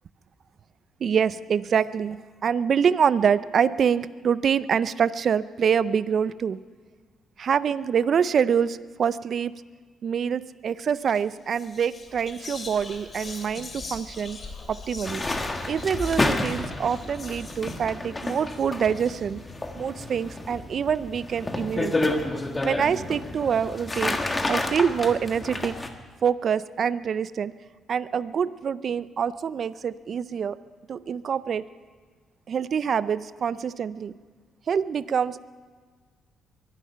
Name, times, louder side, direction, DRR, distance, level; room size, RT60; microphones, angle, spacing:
voice 1, 1.0-6.6 7.4-9.5 10.0-14.4 14.7-15.2 15.7-19.4 19.7-22.1 22.6-24.2 24.5-25.8 26.2-27.5 27.9-30.6 30.9-31.6 32.5-34.1 34.7-35.4, right 7 dB, 55° right, 16 dB, 0.4 m, -25 dB
Whispering, 11.0-11.2 11.5-19.6, left 3 dB, 40° left, 2.6 m, -41 dB
sound 1, 15.0-25.9, left 2 dB, 20° left, 1.5 m, -30 dB
23.0 x 11.0 x 5.7 m, 1.5 s
cardioid pair, 90°, 0 cm